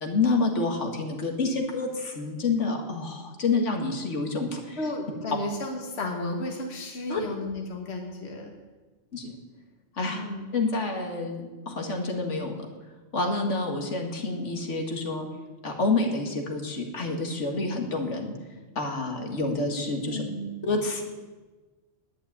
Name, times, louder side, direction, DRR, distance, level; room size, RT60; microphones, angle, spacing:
voice 1, 0.0-4.8 7.1-7.2 9.1-9.3 9.9-10.2 10.5-12.7 13.1-15.3 15.6-18.3 18.8-20.2 20.6-21.0, left 3 dB, 85° left, 2 dB, 2.0 m, -28 dB
voice 2, 4.8-8.5 10.1-10.4 20.1-20.5, left 1 dB, 65° left, 2 dB, 1.7 m, -33 dB
10.0 x 8.7 x 9.5 m, 1.3 s
omnidirectional pair, 1.2 m